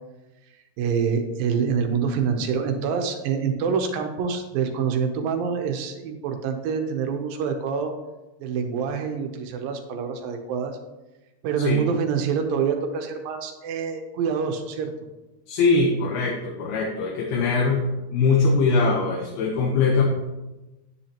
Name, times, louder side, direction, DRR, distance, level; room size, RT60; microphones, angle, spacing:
voice 1, 0.8-7.9 8.4-10.8 11.4-14.9, right 6 dB, 75° right, 5 dB, 2.4 m, -26 dB
voice 2, 15.5-17.8 18.1-20.0, left 4 dB, 75° left, 0 dB, 2.8 m, -21 dB
10.0 x 9.9 x 2.9 m, 1.1 s
omnidirectional pair, 4.6 m